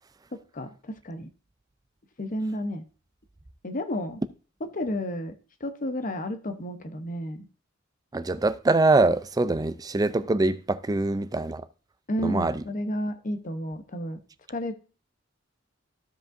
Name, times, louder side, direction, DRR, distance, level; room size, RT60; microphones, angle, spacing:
voice 1, 0.3-1.3 2.2-2.8 3.6-4.2 4.6-5.3 5.6-7.5 12.1-14.2 14.5-14.7, equal, 45° left, 0.9 m, -31 dB
voice 2, 8.1-11.6 12.2-12.6, right 2 dB, 20° right, 0.4 m, -24 dB
15.0 x 5.2 x 2.6 m
head